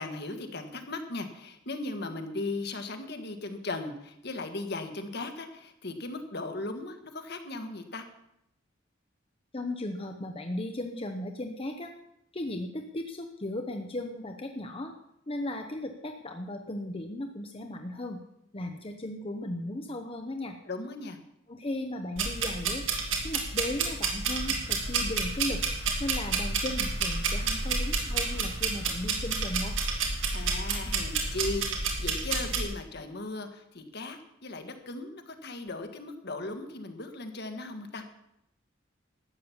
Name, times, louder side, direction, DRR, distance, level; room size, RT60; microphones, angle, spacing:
voice 1, 0.0-8.0 20.6-21.2 30.3-38.0, left 2 dB, 55° left, 6 dB, 1.6 m, -37 dB
voice 2, 9.5-11.9 12.3-14.9 15.3-18.2 18.5-20.6 21.5-22.8 23.2-25.6 26.0-29.8, left 1 dB, 30° left, 4 dB, 0.9 m, -36 dB
sound 1, 22.2-32.6, right 4 dB, 85° right, 2.7 m, -30 dB
sound 2, 24.3-31.6, right 1 dB, 55° right, 2.0 m, -45 dB
13.0 x 8.8 x 7.2 m, 0.80 s
head